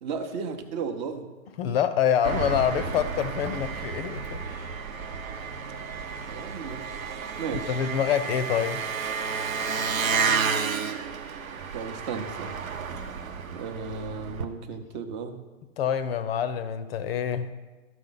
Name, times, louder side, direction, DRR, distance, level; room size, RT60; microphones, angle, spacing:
voice 1, 0.0-1.3 6.3-6.9 7.4-7.8 11.7-12.5 13.5-15.4, right 5 dB, 35° right, 7 dB, 0.7 m, -34 dB
voice 2, 1.6-4.7 7.5-8.8 15.8-17.5, left 9 dB, 50° left, 12 dB, 0.6 m, -26 dB
Engine, 2.2-14.4, right 5 dB, 80° right, 0.9 m, -31 dB
12.5 x 6.2 x 3.9 m, 1.3 s
hypercardioid pair, 125°, 40 cm